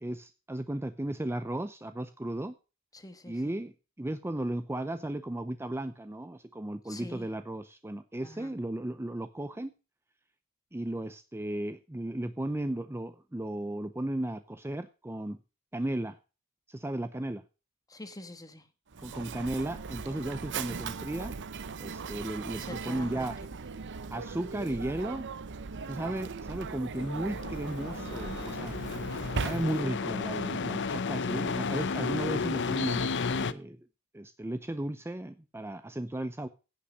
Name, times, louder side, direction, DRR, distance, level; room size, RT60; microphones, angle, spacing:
voice 1, 0.0-2.5 3.3-3.7 4.0-9.7 10.7-15.4 15.7-16.2 16.7-17.4 19.0-21.3 21.8-23.3 24.1-25.2 25.9-28.8 29.4-33.8 34.1-36.5, right 1 dB, 10° right, 0.6 m, -35 dB
voice 2, 2.9-3.5 6.8-7.3 8.2-8.6 17.9-18.7 22.6-23.3 23.6-23.7 26.0-26.3, left 1 dB, 15° left, 1.4 m, -46 dB
Mechanisms, 18.9-30.1, right 5 dB, 55° right, 0.7 m, -39 dB
sound 1, 26.9-33.5, left 4 dB, 55° left, 0.7 m, -33 dB
16.0 x 5.8 x 6.4 m
head